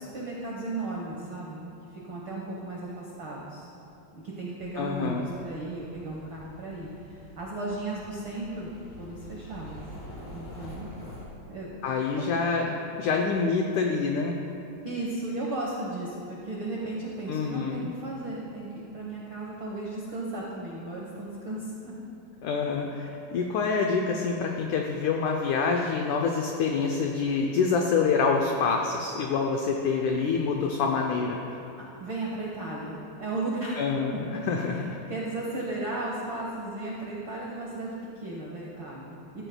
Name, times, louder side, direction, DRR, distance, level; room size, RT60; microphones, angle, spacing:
voice 1, 0.0-1.6 1.9-3.7 4.1-8.7 9.0-9.8 10.3-10.9 11.5-12.5 14.8-18.7 18.9-21.9 32.0-33.8 35.1-39.5, right 2 dB, 85° right, -4 dB, 1.1 m, -35 dB
sound 1, 4.6-11.3, left 1 dB, 55° left, 3.5 m, -46 dB
voice 2, 4.8-5.3 11.8-14.3 17.3-17.9 22.4-31.4 33.8-35.0, left 5 dB, 85° left, 2 dB, 1.7 m, -26 dB
15.0 x 13.5 x 2.3 m, 2.9 s
omnidirectional pair, 4.3 m